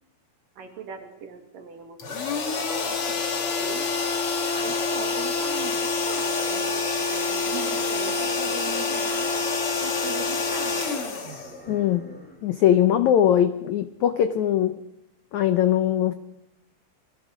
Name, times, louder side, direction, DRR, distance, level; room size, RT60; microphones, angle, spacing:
voice 1, 0.6-3.9 4.5-9.3 9.8-11.1, right 7 dB, 60° right, 4 dB, 3.8 m, -40 dB
sound 1, 2.0-12.0, left 4 dB, 40° left, 2.6 m, -27 dB
sound 2, 7.3-12.6, right 1 dB, 5° left, 2.1 m, -45 dB
voice 2, 11.7-12.1 12.4-14.8 15.3-16.1, left 10 dB, 85° left, 10 dB, 1.6 m, -21 dB
29.5 x 21.5 x 5.1 m, 0.86 s
omnidirectional pair, 4.6 m